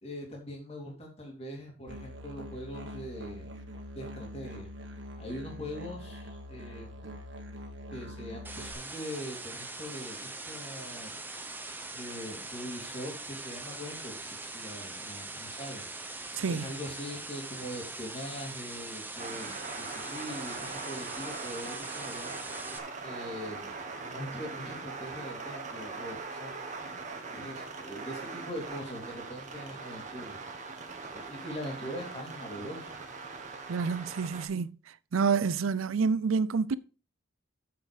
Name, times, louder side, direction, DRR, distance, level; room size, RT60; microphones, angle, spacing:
voice 1, 0.0-3.5 3.9-4.7 5.2-7.2 7.9-11.2 11.9-15.9 16.5-22.4 23.0-23.7 24.0-26.5 27.3-30.4 31.1-33.0, equal, 30° left, 2.7 m, -42 dB
Musical instrument, 1.9-8.7, left 1 dB, 60° right, 1.7 m, -44 dB
sound 1, 8.4-22.8, right 2 dB, 10° right, 0.9 m, -42 dB
voice 2, 16.4-16.7 33.7-36.8, right 5 dB, 85° right, 0.5 m, -28 dB
sound 2, 19.2-34.5, right 4 dB, 35° right, 1.5 m, -41 dB
7.8 x 6.8 x 5.0 m
head